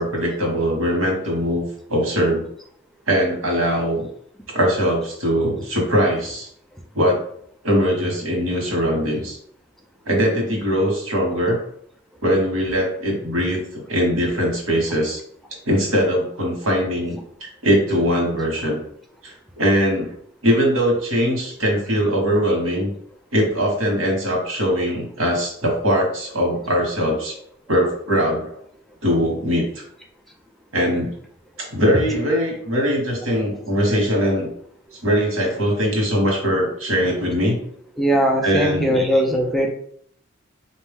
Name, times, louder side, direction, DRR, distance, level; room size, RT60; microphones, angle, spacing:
voice 1, 0.0-2.4 3.1-4.1 4.5-6.5 6.9-7.2 7.6-9.4 10.0-11.6 12.2-15.2 15.6-18.8 19.2-20.1 20.4-22.9 23.3-27.3 27.7-28.6 29.0-29.8 30.7-31.1 31.6-34.5 35.0-37.6 38.4-39.0, equal, 85° right, 0 dB, 1.5 m, -21 dB
voice 2, 38.0-39.7, equal, ahead, 0 dB, 0.5 m, -19 dB
4.2 x 2.6 x 3.6 m, 0.65 s
head